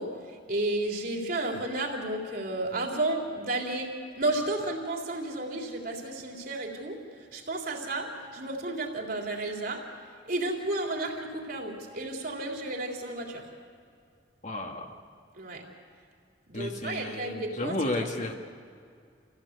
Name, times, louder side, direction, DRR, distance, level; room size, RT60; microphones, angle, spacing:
voice 1, 0.0-3.9 4.2-7.0 7.3-9.9 10.3-13.5 15.4-15.6 16.5-18.3, right 2 dB, 50° right, 0 dB, 3.6 m, -32 dB
voice 2, 14.4-14.9 16.5-18.3, left 1 dB, 40° left, 3 dB, 1.8 m, -32 dB
27.5 x 16.0 x 8.2 m, 2.3 s
head